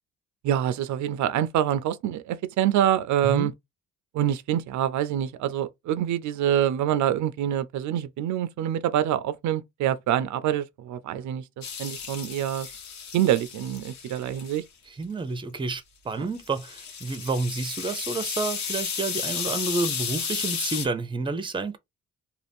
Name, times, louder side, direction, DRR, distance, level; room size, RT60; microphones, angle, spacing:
voice 1, 0.4-3.5 4.1-12.7 13.1-14.6 16.2-16.3, right 11 dB, 70° right, 0.4 m, -26 dB
sound 1, 11.6-14.6 16.4-20.8, left 6 dB, 65° left, 1.2 m, -33 dB
voice 2, 14.9-21.8, right 3 dB, 15° right, 0.6 m, -30 dB
2.5 x 2.4 x 3.4 m
cardioid pair, 90°, 30 cm